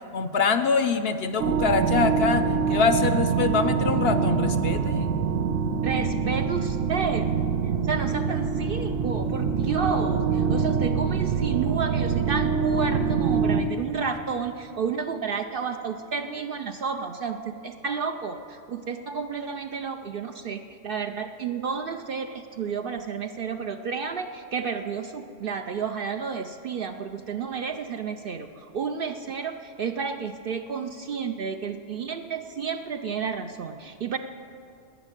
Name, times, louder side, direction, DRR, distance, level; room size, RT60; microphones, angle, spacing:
voice 1, 0.1-5.1, left 5 dB, 60° left, 10 dB, 0.7 m, -24 dB
sound 1, 1.4-13.6, right 6 dB, 85° right, 1.2 m, -25 dB
voice 2, 5.8-7.3 7.8-34.2, right 6 dB, 60° right, 7 dB, 0.6 m, -31 dB
11.0 x 9.7 x 9.0 m, 2.5 s
omnidirectional pair, 1.3 m